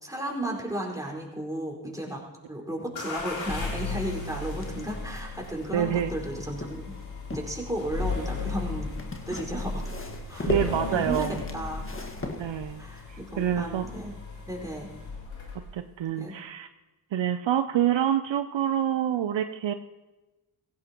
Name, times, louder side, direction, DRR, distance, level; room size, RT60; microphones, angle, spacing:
voice 1, 0.0-6.9 7.3-8.9 9.3-9.8 10.3-11.3 11.5-11.8 12.8-14.1 14.5-14.9 16.2-16.3, right 1 dB, 5° right, -2 dB, 4.7 m, -34 dB
sound 1, 3.0-15.8, left 4 dB, 75° left, 3.7 m, -36 dB
sound 2, 3.8-6.3 6.6-7.6 8.9-13.0, left 2 dB, 25° left, 1.7 m, -38 dB
voice 2, 5.7-6.1 10.5-11.4 12.4-12.8 13.1-13.8 15.7-16.7 17.1-19.7, right 10 dB, 70° right, 10 dB, 0.7 m, -27 dB
17.0 x 16.0 x 3.0 m, 1.1 s
cardioid pair, 50°, 47 cm